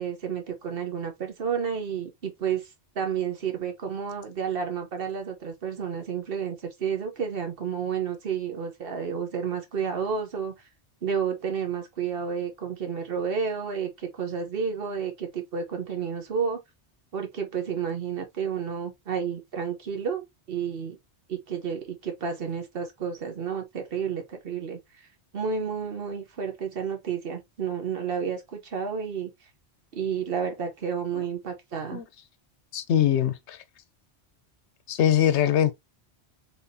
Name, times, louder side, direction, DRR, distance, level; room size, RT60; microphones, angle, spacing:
voice 1, 0.0-10.6 11.0-16.6 17.1-21.0 21.3-25.1 25.3-29.3 29.9-32.0, right 7 dB, 60° right, 1.1 m, -31 dB
voice 2, 32.7-33.6 34.9-35.7, left 10 dB, 85° left, 0.9 m, -22 dB
4.1 x 3.5 x 2.7 m
omnidirectional pair, 1.1 m